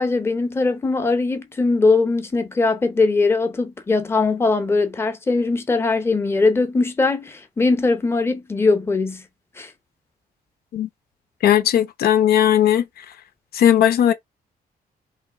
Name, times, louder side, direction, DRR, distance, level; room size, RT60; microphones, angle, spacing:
voice 1, 0.0-9.2 9.6-9.7, left 3 dB, 15° left, 0.7 m, -20 dB
voice 2, 11.4-13.0 13.5-14.1, left 10 dB, 75° left, 0.7 m, -17 dB
3.2 x 3.0 x 4.7 m
cardioid pair, 160°, 16 cm